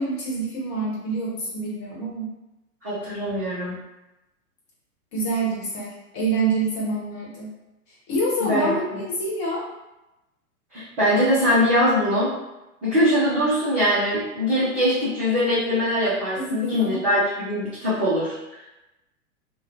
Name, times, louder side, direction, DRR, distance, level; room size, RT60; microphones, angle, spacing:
voice 1, 0.0-2.3 5.1-7.5 8.1-8.8 9.2-9.6 16.4-17.0, right 2 dB, 35° left, -5 dB, 1.0 m, -26 dB
voice 2, 2.8-3.7 8.4-9.0 10.7-12.3 12.8-18.4, equal, 10° right, -15 dB, 0.3 m, -22 dB
2.4 x 2.1 x 2.6 m, 0.95 s
figure-of-eight pair, 100°, 43 cm